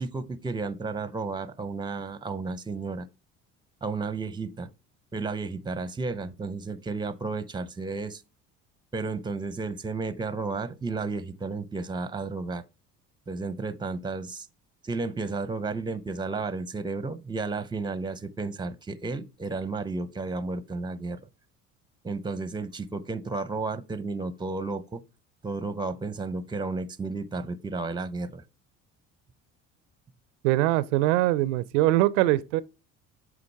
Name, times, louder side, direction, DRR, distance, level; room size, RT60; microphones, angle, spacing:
voice 1, 0.0-3.1 3.8-4.7 5.1-8.2 8.9-12.6 13.3-14.5 14.8-21.2 22.0-25.0 25.4-28.4, right 3 dB, 10° right, 0.7 m, -32 dB
voice 2, 30.4-32.6, right 16 dB, 75° right, 0.5 m, -22 dB
7.8 x 5.1 x 3.4 m
hypercardioid pair, 65°, 37 cm